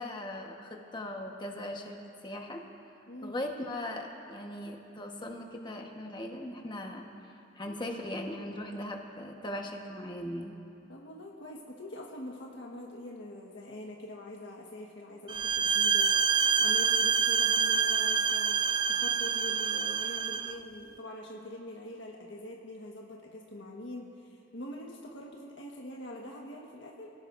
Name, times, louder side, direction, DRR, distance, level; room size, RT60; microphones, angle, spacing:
voice 1, 0.0-2.0 2.2-2.6 3.2-7.1 7.5-10.5, left 1 dB, 25° left, 2 dB, 1.3 m, -39 dB
voice 2, 10.9-18.6 18.9-27.1, left 1 dB, 80° left, -2 dB, 1.5 m, -44 dB
sound 1, 15.3-20.6, right 6 dB, 25° right, 0.4 m, -27 dB
26.5 x 17.5 x 2.6 m, 2.7 s
head